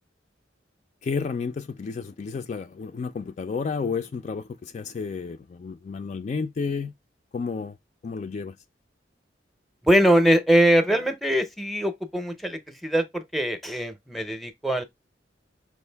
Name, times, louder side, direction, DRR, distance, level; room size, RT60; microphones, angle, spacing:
voice 1, 1.0-6.9 7.3-7.7 8.0-8.6, left 5 dB, 40° left, 0.3 m, -31 dB
voice 2, 9.8-14.8, right 1 dB, ahead, 0.6 m, -22 dB
5.3 x 2.5 x 3.3 m
head